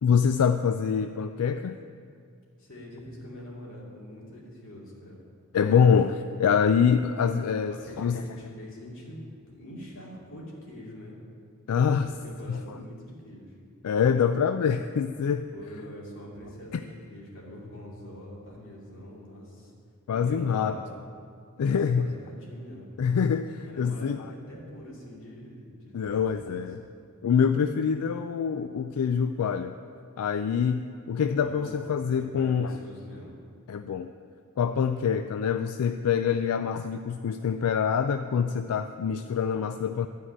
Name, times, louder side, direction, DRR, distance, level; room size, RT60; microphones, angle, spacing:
voice 1, 0.0-1.8 5.5-8.2 11.7-12.1 12.5-12.8 13.8-15.5 16.7-16.8 20.1-20.8 21.6-22.1 23.0-24.3 25.9-26.8 27.2-29.8 30.2-32.8 33.7-34.1 34.6-40.1, left 7 dB, 90° left, 9 dB, 0.4 m, -25 dB
voice 2, 2.6-5.2 7.7-11.1 11.8-13.5 15.5-19.7 20.1-21.0 21.6-22.9 23.6-26.6 31.4-33.3, left 1 dB, 60° left, -4 dB, 2.7 m, -44 dB
12.5 x 4.8 x 8.7 m, 2.3 s
head